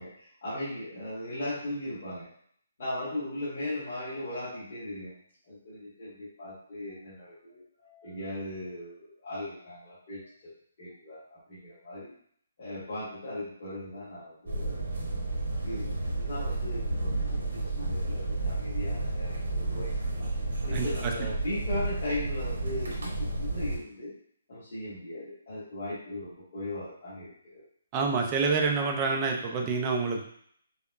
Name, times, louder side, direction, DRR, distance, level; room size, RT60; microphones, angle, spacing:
voice 1, 0.0-2.3 2.8-5.1 5.5-10.2 10.8-12.1 12.6-14.9 15.6-19.9 20.6-24.1 24.5-27.6, left 1 dB, 35° left, -14 dB, 1.4 m, -38 dB
sound 1, 14.5-23.8, right 2 dB, 70° right, 1.0 m, -31 dB
voice 2, 27.9-30.2, right 4 dB, 15° right, 1 dB, 0.3 m, -27 dB
5.1 x 2.1 x 2.4 m, 0.64 s
hypercardioid pair, 180°, 0 cm